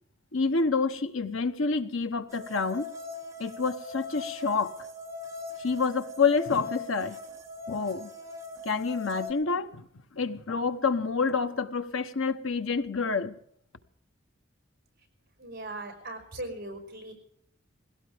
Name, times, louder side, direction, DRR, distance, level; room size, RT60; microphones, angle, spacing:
voice 1, 0.3-2.9 3.4-4.8 5.6-7.2 7.7-8.1 8.6-9.9 10.1-13.4, left 4 dB, 85° left, 1.1 m, -28 dB
sound 1, 2.3-9.3, left 3 dB, 15° right, 1.9 m, -40 dB
voice 2, 15.4-17.1, right 1 dB, 50° right, 5.4 m, -39 dB
21.0 x 17.0 x 3.6 m
head